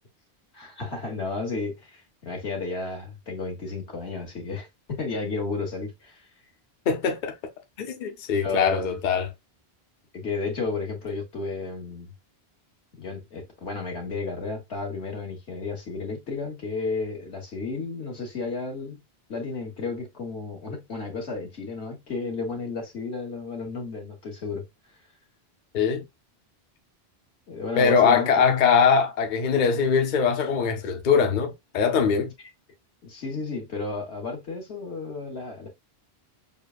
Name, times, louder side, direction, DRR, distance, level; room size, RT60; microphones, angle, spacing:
voice 1, 0.5-6.2 8.4-9.0 10.1-12.1 13.0-19.0 19.3-24.6 27.5-28.3 33.0-35.7, left 3 dB, 85° left, 1.9 m, -32 dB
voice 2, 6.9-7.3 7.8-9.3 25.7-26.0 27.8-32.3, left 6 dB, 50° left, 0.7 m, -22 dB
6.7 x 2.3 x 2.4 m
omnidirectional pair, 1.1 m